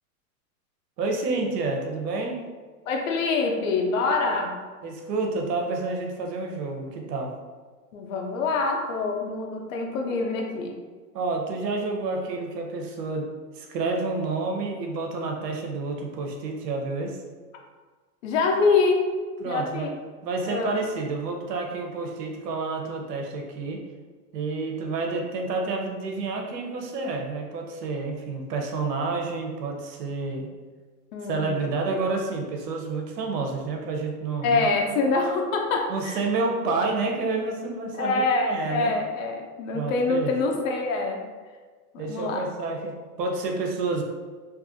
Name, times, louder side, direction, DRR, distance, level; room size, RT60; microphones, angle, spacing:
voice 1, 1.0-2.4 4.8-7.3 11.1-17.2 19.4-19.9 20.2-23.8 24.3-30.5 31.3-34.7 35.9-38.9 39.7-40.3 42.0-44.0, right 3 dB, 75° right, 1 dB, 0.7 m, -29 dB
voice 2, 2.9-4.6 7.9-10.7 18.2-19.1 19.4-19.9 20.5-20.7 31.1-31.6 34.4-36.2 37.9-41.2 41.9-42.4, left 3 dB, 55° left, 1 dB, 0.5 m, -25 dB
2.6 x 2.4 x 2.5 m, 1.4 s
hypercardioid pair, 150°, 48 cm